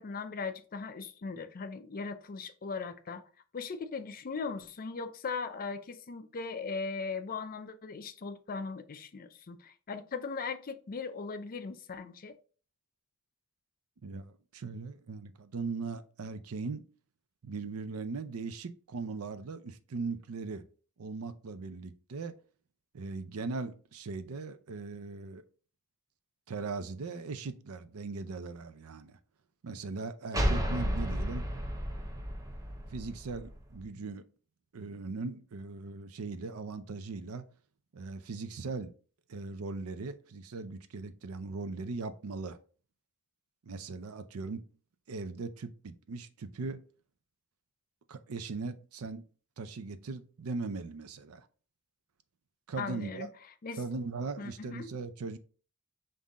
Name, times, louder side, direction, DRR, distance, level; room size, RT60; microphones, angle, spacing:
voice 1, 0.0-12.3 52.8-53.3 53.6-53.8 54.4-54.9, left 4 dB, 40° left, 0.5 m, -39 dB
voice 2, 14.0-16.9 17.4-20.7 21.0-22.3 22.9-25.4 26.5-29.2 29.6-31.5 32.9-34.2 34.7-37.5 37.9-38.9 39.3-42.6 43.6-44.7 45.1-46.8 48.1-49.2 49.6-51.5 52.7-53.3 53.8-55.4, right 4 dB, 85° right, 0.5 m, -39 dB
sound 1, 30.3-33.8, equal, 15° right, 0.7 m, -32 dB
5.5 x 2.6 x 3.6 m
head